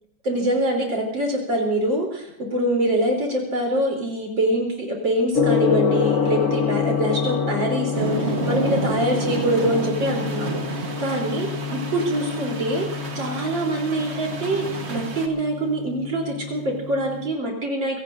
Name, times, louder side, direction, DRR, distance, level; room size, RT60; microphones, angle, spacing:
voice 1, 0.2-18.0, right 1 dB, 65° right, 0 dB, 4.4 m, -24 dB
Gong, 5.3-17.3, left 7 dB, 50° left, 1.1 m, -27 dB
sound 1, 7.9-15.3, right 4 dB, 35° right, 1.4 m, -31 dB
23.0 x 17.5 x 2.7 m, 0.75 s
omnidirectional pair, 2.2 m